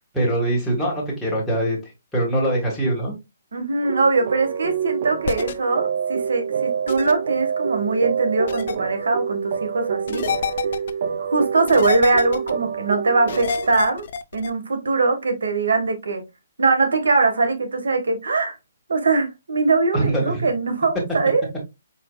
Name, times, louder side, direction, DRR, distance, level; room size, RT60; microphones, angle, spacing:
voice 1, 0.1-1.8 2.1-3.1 19.9-20.5, right 1 dB, 5° left, 1.5 m, -22 dB
voice 2, 3.5-10.3 11.2-14.1 14.3-16.2 16.6-18.6 18.9-21.4, right 3 dB, 90° right, 1.3 m, -21 dB
sound 1, 3.8-13.7, right 7 dB, 50° right, 0.5 m, -27 dB
sound 2, 5.2-5.5 6.9-7.1 8.5-8.8 10.1-10.9 11.7-12.5 13.3-14.5, left 7 dB, 50° left, 0.5 m, -28 dB
4.6 x 4.2 x 2.2 m
hypercardioid pair, 160°, 0 cm